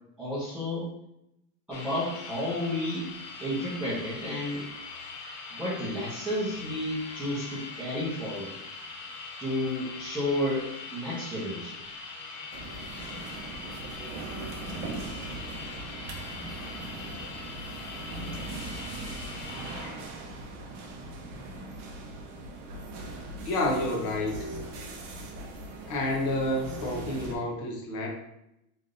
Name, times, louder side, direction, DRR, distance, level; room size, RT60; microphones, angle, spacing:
voice 1, 0.2-0.9 1.7-3.1 3.4-4.6 5.5-8.6 9.4-11.8, left 1 dB, ahead, -12 dB, 0.7 m, -31 dB
sound 1, 1.7-20.0, left 4 dB, 90° left, 0.9 m, -42 dB
sound 2, 12.5-27.4, right 2 dB, 45° right, 0.7 m, -40 dB
voice 2, 23.4-24.4 25.9-28.1, left 1 dB, 40° left, -1 dB, 0.9 m, -29 dB
3.3 x 2.6 x 3.8 m, 0.83 s
supercardioid pair, 170°, 44 cm